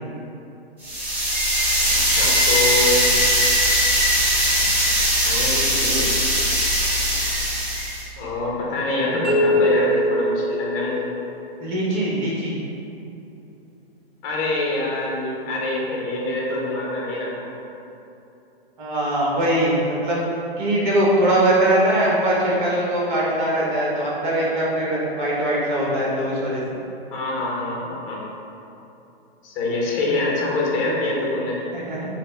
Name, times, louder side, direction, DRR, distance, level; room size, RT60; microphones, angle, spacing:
sound 1, 0.8-8.0, equal, 5° right, 0.4 m, -20 dB
voice 1, 2.1-3.0 5.2-6.5 8.2-11.1 14.2-17.5 27.1-28.2 29.4-31.6, left 2 dB, 30° left, -4 dB, 0.7 m, -25 dB
sound 2, 9.2-11.2, equal, 20° right, 1.4 m, -22 dB
voice 2, 11.6-12.6 18.8-20.2 20.6-26.6 31.7-32.1, right 1 dB, 50° right, -5 dB, 1.1 m, -21 dB
4.0 x 2.2 x 3.3 m, 2.9 s
hypercardioid pair, 130°, 31 cm